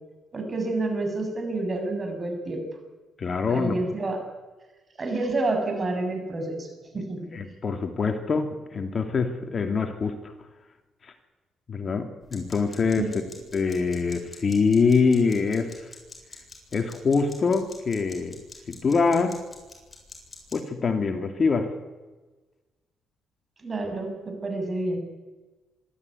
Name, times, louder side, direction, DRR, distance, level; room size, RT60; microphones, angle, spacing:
voice 1, 0.3-2.6 3.5-4.2 5.0-6.7 6.9-7.3 12.9-13.2 23.6-25.0, right 2 dB, 35° right, 4 dB, 7.3 m, -28 dB
voice 2, 3.2-3.8 7.3-10.3 11.0-11.1 11.7-13.1 13.5-15.9 16.7-18.4 18.7-19.4 20.5-21.7, left 4 dB, 40° left, 6 dB, 2.6 m, -24 dB
sound 1, 12.2-20.6, left 3 dB, 25° left, 7.8 m, -48 dB
25.5 x 13.0 x 9.7 m, 1.2 s
cardioid pair, 90°, 0 cm